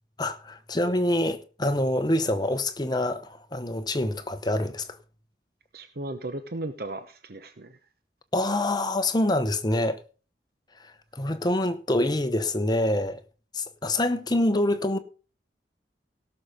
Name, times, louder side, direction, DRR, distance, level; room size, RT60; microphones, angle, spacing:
voice 1, 0.2-4.9 8.3-10.0 10.8-13.2 13.5-15.0, left 1 dB, 25° left, 0.9 m, -26 dB
voice 2, 5.7-7.8, right 2 dB, 60° right, 0.9 m, -36 dB
17.0 x 6.6 x 5.1 m
head